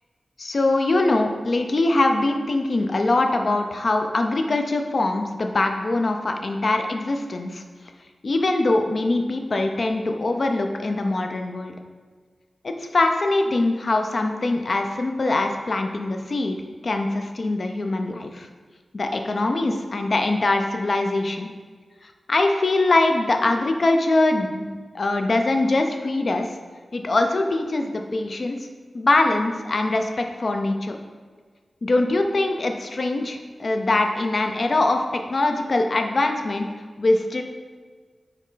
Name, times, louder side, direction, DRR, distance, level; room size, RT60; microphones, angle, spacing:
voice 1, 0.4-7.6 8.2-11.7 12.6-16.6 16.8-18.5 18.9-21.5 22.3-26.5 26.9-28.6 28.9-31.0 31.8-36.7 37.0-37.4, left 2 dB, 60° left, 4 dB, 0.4 m, -22 dB
4.3 x 3.0 x 4.0 m, 1.6 s
cardioid pair, 55°, 0 cm